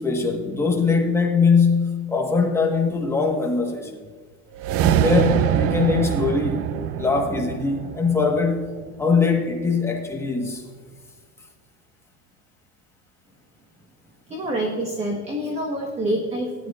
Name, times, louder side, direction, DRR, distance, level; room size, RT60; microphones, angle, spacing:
voice 1, 0.0-4.0 5.0-6.6 7.0-8.7 9.0-10.6, left 4 dB, 10° left, 0 dB, 1.3 m, -21 dB
sound 1, 4.5-8.9, right 9 dB, 50° right, 0.5 m, -24 dB
voice 2, 14.3-16.7, right 1 dB, 20° right, 1 dB, 1.3 m, -27 dB
18.0 x 11.5 x 2.5 m, 1.6 s
cardioid pair, 160°, 30 cm